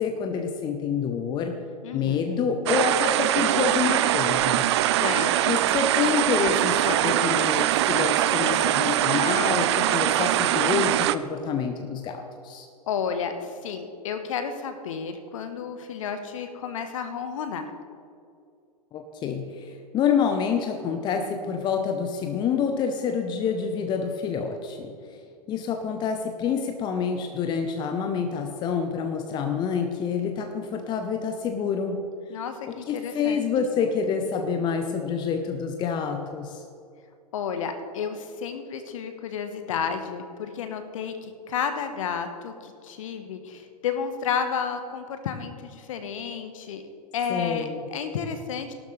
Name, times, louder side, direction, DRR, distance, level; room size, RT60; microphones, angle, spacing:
voice 1, 0.0-1.5 1.9-4.7 5.5-12.7 18.9-24.9 25.5-32.0 32.7-36.6 47.3-47.8, left 6 dB, 20° left, 6 dB, 0.8 m, -27 dB
voice 2, 1.8-2.4 4.9-5.6 12.9-17.7 32.3-33.5 37.3-46.8 47.1-48.7, left 7 dB, 55° left, 8 dB, 1.3 m, -32 dB
sound 1, 2.7-11.2, right 13 dB, 45° right, 0.5 m, -22 dB
16.5 x 12.0 x 3.3 m, 2.4 s
figure-of-eight pair, 100°, 20 cm